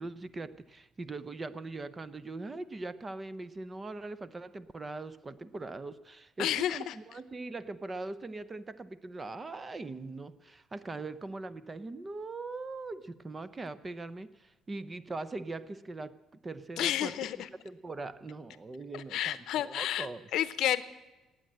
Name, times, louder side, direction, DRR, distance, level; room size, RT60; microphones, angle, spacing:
voice 1, 0.0-17.1 17.6-20.2, right 3 dB, 20° right, 15 dB, 0.5 m, -41 dB
voice 2, 6.4-7.0 16.8-17.5 18.9-20.8, left 12 dB, 70° left, 14 dB, 0.7 m, -31 dB
18.5 x 8.6 x 7.6 m, 1.1 s
cardioid pair, 160°, 0 cm